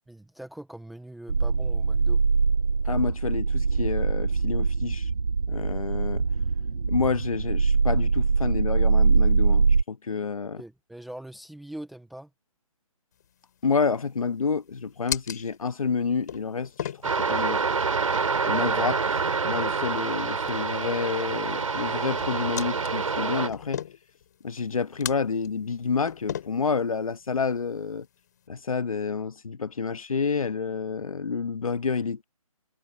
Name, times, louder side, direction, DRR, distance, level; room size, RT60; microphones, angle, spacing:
voice 1, 0.1-2.2 10.6-12.3 18.7-18.8, right 1 dB, ahead, 0.5 m, -42 dB
sound 1, 1.3-9.8, right 4 dB, 80° right, 1.6 m, -23 dB
voice 2, 2.8-5.1 5.5-6.2 6.9-10.6 13.6-17.7 18.5-19.0 19.4-23.8 24.4-28.1 28.5-32.2, left 5 dB, 65° left, 1.4 m, -29 dB
sound 2, 13.1-28.5, left 10 dB, 30° left, 4.8 m, -41 dB
sound 3, 17.0-23.5, right 5 dB, 60° right, 4.8 m, -27 dB
hypercardioid pair, 170°, 19 cm